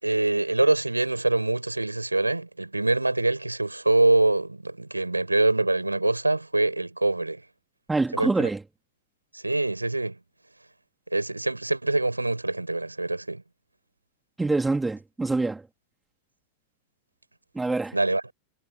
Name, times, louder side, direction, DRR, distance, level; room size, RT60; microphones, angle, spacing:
voice 1, 0.0-7.4 8.1-8.5 9.3-10.2 11.1-13.4 17.9-18.2, right 2 dB, 85° right, 7.1 m, -24 dB
voice 2, 7.9-8.6 14.4-15.6 17.6-18.0, right 3 dB, 10° right, 3.5 m, -25 dB
figure-of-eight pair, 90°, 0 cm